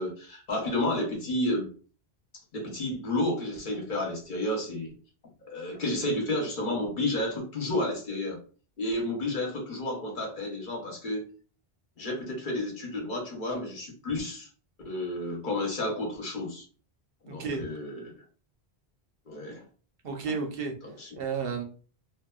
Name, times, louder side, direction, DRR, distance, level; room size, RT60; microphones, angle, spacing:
voice 1, 0.0-1.7 2.5-4.9 5.4-8.4 8.8-11.2 12.0-14.5 14.8-16.7 17.2-18.1 19.3-19.6 20.3-20.4 20.8-21.2, left 1 dB, 50° left, 1 dB, 0.9 m, -31 dB
voice 2, 17.3-17.7 20.0-20.7 21.2-21.6, right 5 dB, 65° right, 4 dB, 0.8 m, -32 dB
2.7 x 2.2 x 2.3 m, 0.39 s
omnidirectional pair, 1.1 m